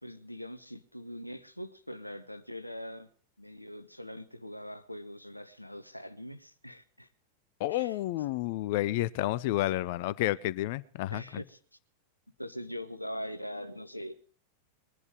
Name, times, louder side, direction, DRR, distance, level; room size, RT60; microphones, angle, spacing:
voice 1, 0.0-3.1 3.4-7.1 7.7-8.0 11.1-11.6 12.4-14.1, equal, 90° left, 10 dB, 1.0 m, -42 dB
voice 2, 7.6-11.4, left 16 dB, 50° left, 19 dB, 0.6 m, -30 dB
21.5 x 11.0 x 4.9 m, 0.43 s
figure-of-eight pair, 90°, 0 cm